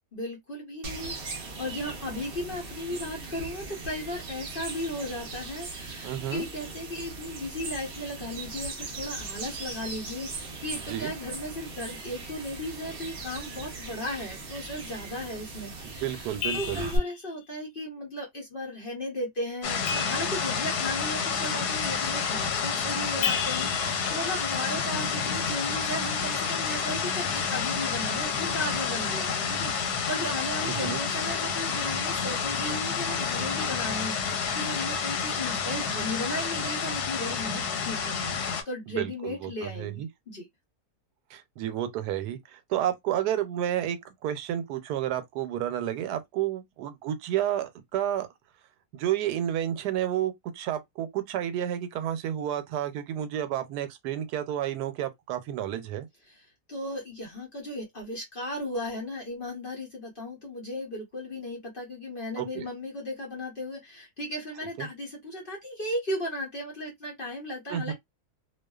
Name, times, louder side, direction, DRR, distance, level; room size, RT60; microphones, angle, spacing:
voice 1, 0.1-16.2 16.5-40.5 56.7-67.9, left 1 dB, 45° left, 0.7 m, -36 dB
sound 1, 0.8-17.0, right 3 dB, 55° right, 0.6 m, -39 dB
voice 2, 6.0-6.5 10.8-11.1 15.8-16.8 30.7-31.0 39.0-40.1 41.3-48.3 48.9-56.1 62.4-62.7 64.8-64.9 67.7-67.9, right 11 dB, 85° right, 1.1 m, -31 dB
sound 2, 16.4-17.2 19.9-20.9 23.2-24.9, left 7 dB, 75° left, 1.0 m, -34 dB
sound 3, 19.6-38.6, left 6 dB, 90° left, 1.2 m, -29 dB
2.5 x 2.3 x 2.3 m
omnidirectional pair, 1.7 m